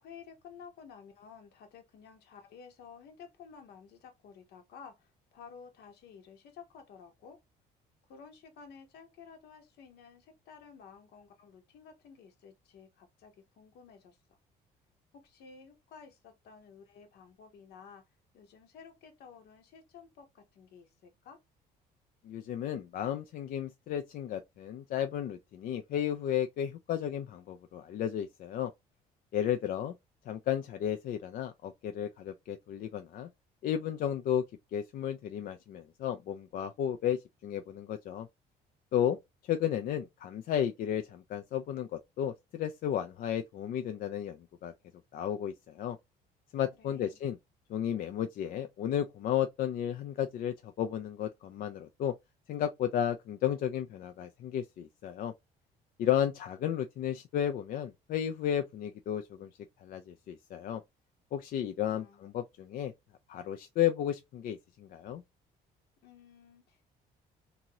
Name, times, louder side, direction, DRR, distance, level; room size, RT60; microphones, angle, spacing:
voice 1, 0.0-7.4 8.1-14.2 15.2-18.0 18.3-21.4 46.8-47.2 61.9-62.3 66.0-66.8, left 6 dB, 75° left, 1.0 m, -53 dB
voice 2, 22.2-28.7 29.3-29.9 30.3-33.3 33.6-34.4 34.7-38.3 38.9-39.2 39.4-44.7 45.1-46.0 46.5-47.4 47.7-52.1 52.5-55.3 56.0-59.5 59.8-60.8 61.3-62.9 63.3-65.2, left 10 dB, 60° left, 0.4 m, -33 dB
2.8 x 2.6 x 2.8 m
cardioid pair, 110°, 17 cm